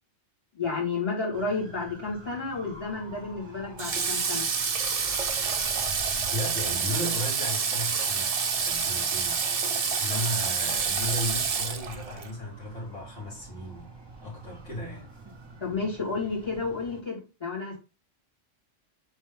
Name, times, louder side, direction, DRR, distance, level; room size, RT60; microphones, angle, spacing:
voice 1, 0.5-4.5 15.6-17.8, left 4 dB, 25° left, 1.9 m, -31 dB
sound 1, 1.3-17.0, right 3 dB, 25° right, 0.9 m, -46 dB
Water / Water tap faucet, 3.8-12.3, right 5 dB, 45° right, 0.5 m, -28 dB
voice 2, 6.1-13.9 14.2-15.1, left 1 dB, 75° left, 2.6 m, -35 dB
4.6 x 3.1 x 3.7 m
omnidirectional pair, 1.2 m